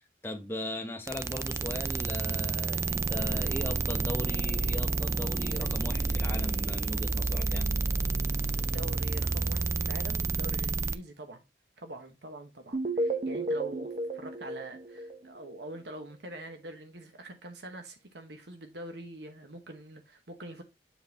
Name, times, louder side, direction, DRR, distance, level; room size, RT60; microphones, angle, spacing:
voice 1, 0.0-7.7, left 1 dB, 15° left, 1.1 m, -38 dB
sound 1, 1.1-11.0, right 3 dB, 15° right, 0.3 m, -30 dB
voice 2, 8.5-11.4 11.8-20.6, right 1 dB, 75° right, 1.1 m, -44 dB
sound 2, 12.7-15.7, right 1 dB, 40° right, 0.8 m, -33 dB
7.3 x 3.9 x 4.0 m
head